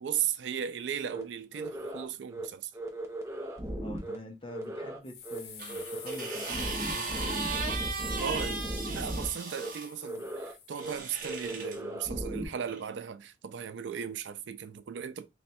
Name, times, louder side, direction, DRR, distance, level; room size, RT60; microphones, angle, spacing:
voice 1, 0.0-2.7 8.2-8.6 8.9-15.3, right 8 dB, 90° right, 0.4 m, -36 dB
sound 1, 1.1-1.2 1.5-2.0 2.3-2.5 2.7-4.2 4.5-5.0 5.2-5.4 5.7-9.3 9.5-9.7 10.0-10.5 10.8-10.9 11.2-12.5, right 1 dB, 15° right, 0.7 m, -37 dB
voice 2, 3.8-7.5 8.1-8.6, left 1 dB, 30° left, 0.8 m, -46 dB
sound 2, 5.0-11.2, left 8 dB, 65° left, 0.7 m, -49 dB
sound 3, 5.6-9.9 10.7-11.8 12.7-12.8, right 4 dB, 50° right, 0.8 m, -37 dB
3.3 x 2.2 x 4.1 m
head